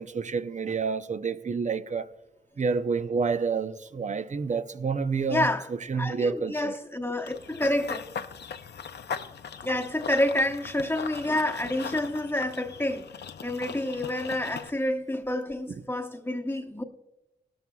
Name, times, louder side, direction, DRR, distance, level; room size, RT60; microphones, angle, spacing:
voice 1, 0.0-2.1 2.6-6.8, right 5 dB, 45° right, 0.6 m, -29 dB
voice 2, 5.3-5.7 5.9-8.0 9.6-13.1 13.4-16.8, left 1 dB, 15° left, 1.0 m, -28 dB
Run / Bird vocalization bird call bird song, 7.3-14.7, left 7 dB, 80° left, 0.6 m, -39 dB
17.5 x 13.0 x 2.3 m
cardioid pair, 70°, 17 cm